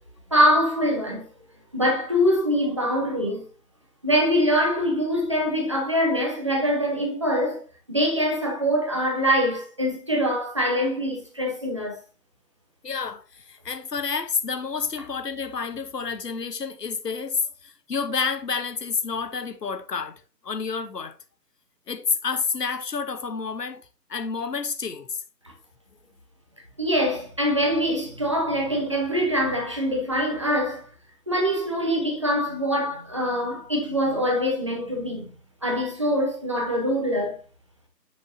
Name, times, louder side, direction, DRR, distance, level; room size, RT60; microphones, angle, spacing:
voice 1, 0.3-1.3 1.7-3.4 4.0-7.6 7.9-12.0 26.8-30.9 31.3-35.3 35.6-37.4, equal, 20° right, 0.9 m, -24 dB
voice 2, 12.8-21.2 21.9-23.8 24.1-25.2, left 5 dB, 70° left, 1.2 m, -29 dB
8.5 x 6.4 x 2.7 m
figure-of-eight pair, 160°, 50 cm